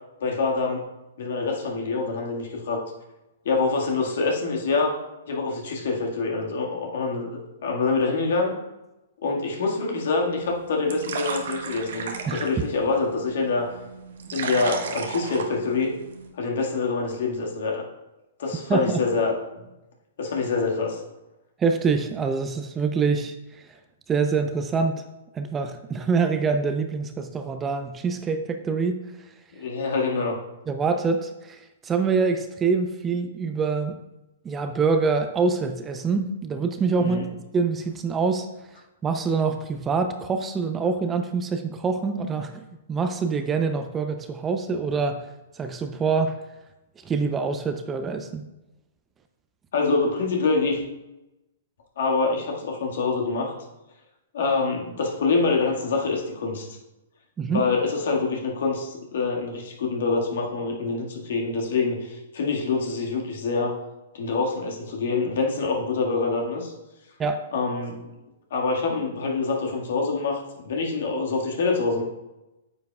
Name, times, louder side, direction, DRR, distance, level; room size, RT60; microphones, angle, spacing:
voice 1, 0.2-0.8 1.2-2.8 3.5-4.9 5.3-8.5 9.2-13.7 14.3-15.9 16.4-17.9 18.4-19.6 20.2-21.0 29.5-30.4 37.0-37.3 49.7-50.8 52.0-53.5 54.3-56.7 57.5-63.7 64.1-66.7 67.5-68.0 68.5-72.0, left 4 dB, 65° left, 0 dB, 1.8 m, -25 dB
sound 1, 10.3-16.3, right 5 dB, 65° right, 1.0 m, -35 dB
voice 2, 12.3-12.6 18.7-19.0 21.6-23.3 24.1-25.0 25.3-29.0 30.7-34.0 34.4-37.2 37.5-38.5 39.0-42.6 42.9-45.3 45.5-46.4 47.0-48.5 57.4-57.7 67.2-67.4, right 4 dB, 20° right, 7 dB, 0.6 m, -25 dB
9.1 x 7.4 x 2.4 m, 0.98 s
hypercardioid pair, 115°, 0 cm